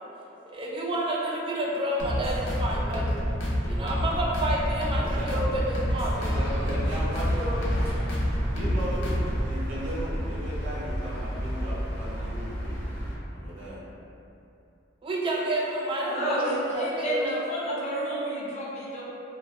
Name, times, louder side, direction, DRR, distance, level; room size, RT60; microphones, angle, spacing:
voice 1, 0.4-3.0 3.7-6.5 7.3-7.6 15.0-17.3, right 1 dB, 25° right, -4 dB, 0.4 m, -30 dB
sound 1, 2.0-9.5, equal, 90° left, 0.6 m, -28 dB
voice 2, 4.9-5.5 6.1-7.4 8.1-12.8 13.3-13.8, equal, 85° right, -8 dB, 0.6 m, -37 dB
sound 2, 5.5-13.1, equal, 15° left, 0.8 m, -32 dB
voice 3, 16.1-19.0, right 1 dB, 35° left, -7 dB, 0.5 m, -30 dB
2.5 x 2.2 x 2.5 m, 2.8 s
head